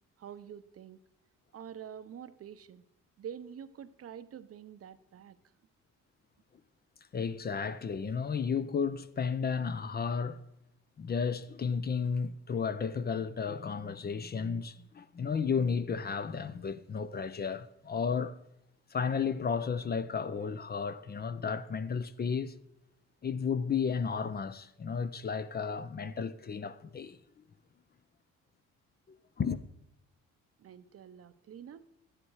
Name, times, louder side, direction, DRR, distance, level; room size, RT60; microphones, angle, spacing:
voice 1, 0.2-1.0 1.5-2.8 3.2-5.4 30.6-31.8, right 9 dB, 50° right, 0.7 m, -47 dB
voice 2, 7.1-10.4 11.0-18.4 18.9-22.6 23.2-27.2 29.4-29.6, left 6 dB, 30° left, 0.6 m, -33 dB
13.0 x 10.0 x 4.7 m
cardioid pair, 90°, 30 cm